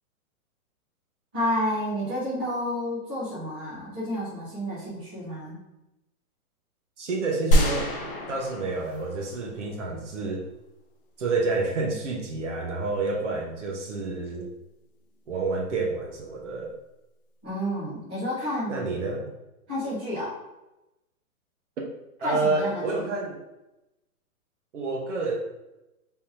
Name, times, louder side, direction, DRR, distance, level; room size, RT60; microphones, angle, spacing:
voice 1, 1.3-5.6 17.4-18.9 19.7-20.4 22.2-23.0, equal, 10° right, -15 dB, 0.6 m, -30 dB
voice 2, 7.0-8.0 8.3-10.5 11.2-14.5 15.3-16.8 18.7-19.3 21.8-21.9 22.2-23.4 24.7-25.4, right 3 dB, 55° right, 0 dB, 0.9 m, -29 dB
sound 1, 7.5-9.8, equal, 40° left, 0.6 m, -25 dB
3.6 x 3.4 x 2.8 m, 0.94 s
hypercardioid pair, 170°, 45 cm